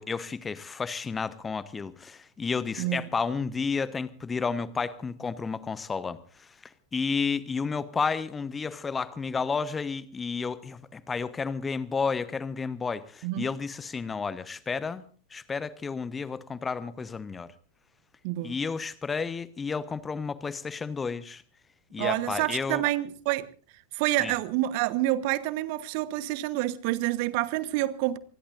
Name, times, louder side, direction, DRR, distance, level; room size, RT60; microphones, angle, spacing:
voice 1, 0.0-6.5 6.9-15.0 15.3-17.5 18.4-21.4 21.9-22.8 24.2-24.3, left 5 dB, 15° left, 1.0 m, -31 dB
voice 2, 18.2-18.6 22.0-23.5 23.9-28.2, right 16 dB, 45° right, 1.2 m, -28 dB
27.0 x 20.5 x 2.6 m
figure-of-eight pair, 90°, 0 cm